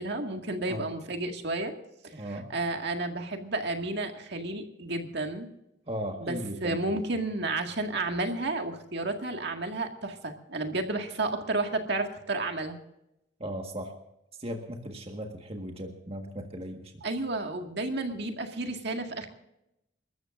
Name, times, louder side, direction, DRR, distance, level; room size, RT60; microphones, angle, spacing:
voice 1, 0.0-1.7 2.0-2.1 2.5-5.5 6.2-12.8 17.0-19.3, right 2 dB, 60° right, 4 dB, 2.0 m, -31 dB
voice 2, 0.6-0.9 2.1-2.5 5.9-6.8 13.4-13.9 14.4-17.0, equal, 30° right, 3 dB, 1.6 m, -37 dB
29.0 x 13.5 x 2.6 m, 0.84 s
head